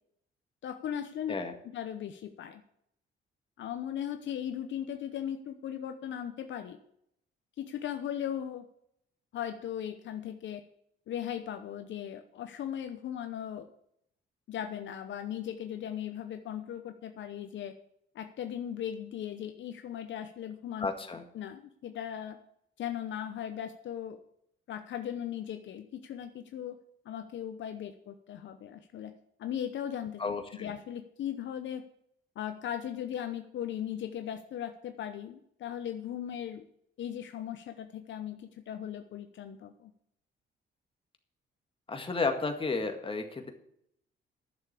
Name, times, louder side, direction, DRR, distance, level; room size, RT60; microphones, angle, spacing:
voice 1, 0.6-1.4 1.7-2.6 3.6-6.8 7.6-8.6 9.3-10.6 11.1-13.7 14.5-17.7 18.1-20.9 21.3-22.4 22.8-24.2 24.7-26.8 27.0-29.1 29.4-31.8 32.4-36.6 37.0-39.9, left 10 dB, 70° left, 7 dB, 0.9 m, -38 dB
voice 2, 20.8-21.2 30.2-30.7 41.9-43.5, left 4 dB, 25° left, 6 dB, 1.8 m, -32 dB
10.5 x 7.0 x 8.3 m, 0.72 s
cardioid pair, 90°, 20 cm